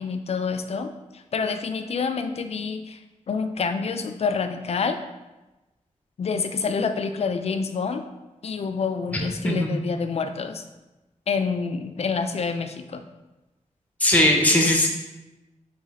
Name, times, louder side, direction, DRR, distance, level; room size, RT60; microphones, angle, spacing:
voice 1, 0.0-3.0 3.3-5.0 6.2-8.1 8.4-10.6 11.3-13.0, left 5 dB, 55° left, 8 dB, 0.4 m, -27 dB
voice 2, 9.4-9.8 14.0-14.9, left 1 dB, 10° left, 0 dB, 0.7 m, -19 dB
4.0 x 3.0 x 4.1 m, 1.1 s
wide cardioid pair, 140°, 13 cm